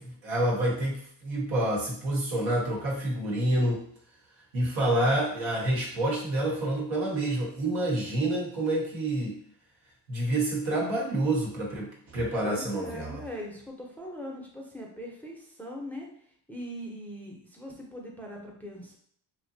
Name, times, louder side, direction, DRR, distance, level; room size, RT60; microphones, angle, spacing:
voice 1, 0.0-3.8 4.5-9.4 10.1-13.2, right 1 dB, 75° right, -3 dB, 1.1 m, -28 dB
voice 2, 12.4-16.1 16.5-19.0, equal, 5° left, -1 dB, 0.5 m, -40 dB
2.7 x 2.2 x 2.6 m, 0.63 s
supercardioid pair, 60°, 46 cm